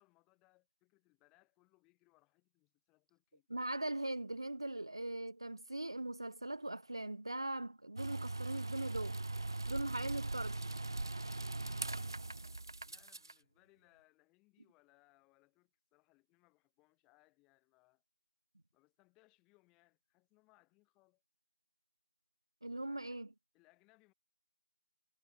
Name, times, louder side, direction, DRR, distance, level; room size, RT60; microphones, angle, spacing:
voice 1, 0.0-3.5 12.4-12.6 12.8-18.0 18.7-21.2 22.8-23.2 23.5-24.1, left 24 dB, 5° left, 6.1 m, -72 dB
voice 2, 3.5-9.2 9.7-10.6 22.6-23.3, right 1 dB, 75° right, 2.3 m, -40 dB
sound 1, 8.0-13.3, right 2 dB, 60° right, 0.5 m, -40 dB
figure-of-eight pair, 170°, 2 cm